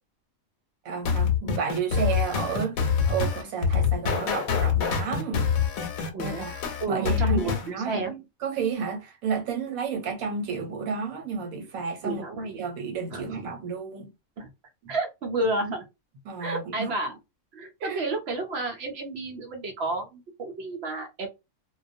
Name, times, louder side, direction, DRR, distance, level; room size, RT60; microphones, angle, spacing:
voice 1, 0.8-5.4 6.2-14.1 14.8-14.9 16.2-16.9 17.8-18.0, right 6 dB, 80° right, 1.2 m, -32 dB
sound 1, 1.0-7.7, left 6 dB, 80° left, 1.0 m, -25 dB
voice 2, 6.1-6.5 6.8-8.1 12.0-12.6 13.1-13.5 14.4-14.5 14.9-15.8 16.4-17.2 17.5-21.3, right 2 dB, 65° right, 0.7 m, -31 dB
2.2 x 2.2 x 2.6 m
omnidirectional pair, 1.5 m